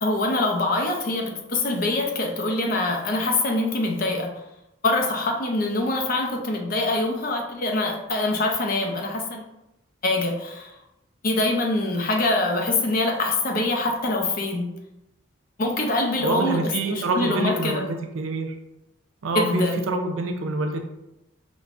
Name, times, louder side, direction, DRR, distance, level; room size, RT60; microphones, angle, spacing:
voice 1, 0.0-4.4 4.8-9.4 10.0-10.8 11.2-14.8 15.6-17.8 19.3-19.9, left 2 dB, 45° left, 1 dB, 0.5 m, -24 dB
voice 2, 16.2-18.5 19.2-20.8, right 2 dB, 75° right, 5 dB, 0.5 m, -26 dB
5.0 x 2.2 x 2.4 m, 0.89 s
head